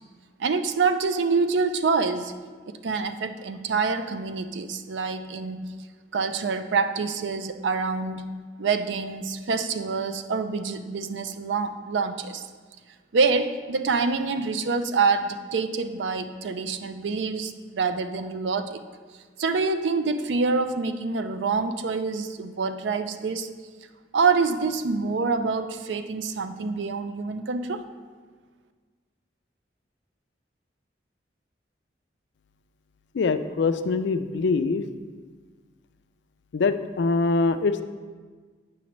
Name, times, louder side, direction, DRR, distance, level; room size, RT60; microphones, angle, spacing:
voice 1, 0.4-2.3 2.7-5.6 6.1-8.2 8.6-12.5 13.1-18.8 19.4-23.5 24.1-27.8, right 4 dB, 75° right, 9 dB, 0.4 m, -26 dB
voice 2, 33.1-34.8 36.5-37.8, left 4 dB, 75° left, 10 dB, 0.4 m, -23 dB
8.4 x 5.9 x 3.1 m, 1.5 s
head